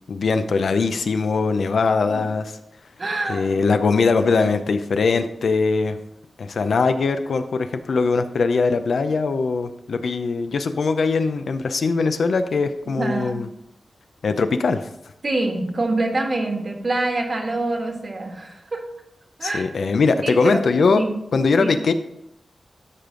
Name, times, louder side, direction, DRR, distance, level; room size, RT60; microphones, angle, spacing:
voice 1, 0.1-2.6 3.3-6.0 6.4-13.5 14.2-14.9 19.4-21.0 21.3-21.9, left 4 dB, 75° left, 9 dB, 0.6 m, -21 dB
voice 2, 3.0-3.6 13.0-13.4 15.2-18.8 19.4-19.6 20.2-20.6 20.9-21.1 21.6-21.8, right 2 dB, 40° right, 3 dB, 1.5 m, -25 dB
12.5 x 5.2 x 3.8 m, 0.84 s
wide cardioid pair, 120°, 0 cm